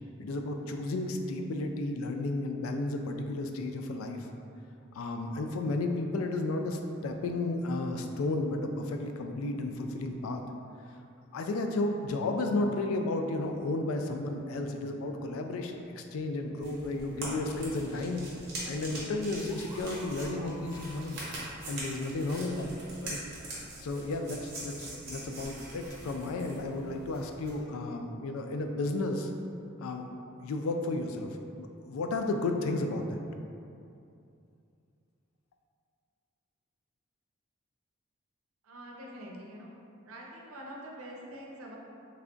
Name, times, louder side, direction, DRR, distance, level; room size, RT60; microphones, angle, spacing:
voice 1, 0.2-4.3 4.9-10.4 11.3-18.2 18.7-21.2 21.7-22.7 23.0-23.2 23.8-29.3 29.8-31.3 31.6-33.2, left 2 dB, 85° left, 4 dB, 0.3 m, -33 dB
sound 1, 16.6-27.6, right 1 dB, 50° right, 0.9 m, -43 dB
sound 2, 19.5-23.3, left 1 dB, 15° right, 0.5 m, -52 dB
voice 2, 38.6-39.8 40.0-41.8, equal, 85° right, -2 dB, 0.6 m, -45 dB
3.3 x 2.4 x 3.7 m, 2.6 s
head